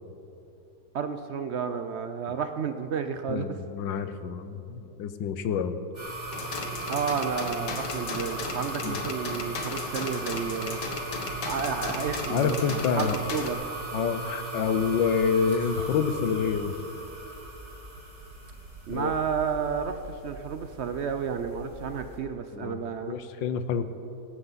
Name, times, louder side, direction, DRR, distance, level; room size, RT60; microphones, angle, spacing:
voice 1, 0.9-3.5 6.9-10.8 11.4-13.6 18.9-23.2, right 6 dB, 80° right, 8 dB, 0.6 m, -31 dB
voice 2, 3.3-5.8 8.8-9.0 12.3-13.2 13.9-16.8 18.9-19.1 22.5-23.9, left 6 dB, 90° left, 11 dB, 1.6 m, -28 dB
sound 1, 5.9-22.2, right 2 dB, 65° right, 4.3 m, -38 dB
sound 2, 6.3-13.5, left 4 dB, 65° left, 2.0 m, -36 dB
19.0 x 17.0 x 4.1 m, 2.9 s
omnidirectional pair, 2.0 m